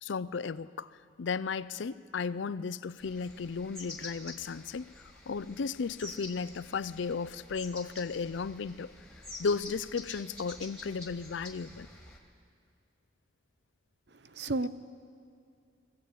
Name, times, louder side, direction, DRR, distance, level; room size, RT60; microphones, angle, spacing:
voice 1, 0.0-4.9 5.3-8.9 9.4-11.9, left 5 dB, 75° left, 0.5 m, -35 dB
sound 1, 3.0-12.2, left 2 dB, 5° left, 1.9 m, -48 dB
voice 2, 14.1-14.7, right 2 dB, 60° right, 0.7 m, -32 dB
21.0 x 16.0 x 8.4 m
head